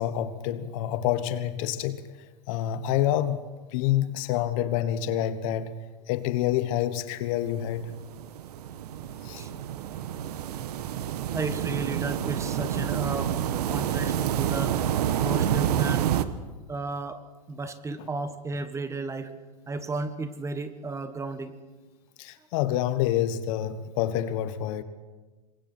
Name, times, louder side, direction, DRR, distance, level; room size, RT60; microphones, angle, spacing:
voice 1, 0.0-2.1 2.5-3.4 3.7-5.8 6.1-7.9 9.2-9.4 18.0-18.1 22.2-24.8, left 12 dB, 55° left, 12 dB, 1.4 m, -27 dB
sound 1, 7.5-16.3, right 10 dB, 75° right, 1.3 m, -28 dB
voice 2, 11.3-13.4 13.7-16.1 16.7-17.2 17.5-19.3 19.7-21.6, right 3 dB, 15° right, 10 dB, 1.6 m, -34 dB
27.5 x 22.5 x 4.5 m, 1.3 s
hypercardioid pair, 115°, 21 cm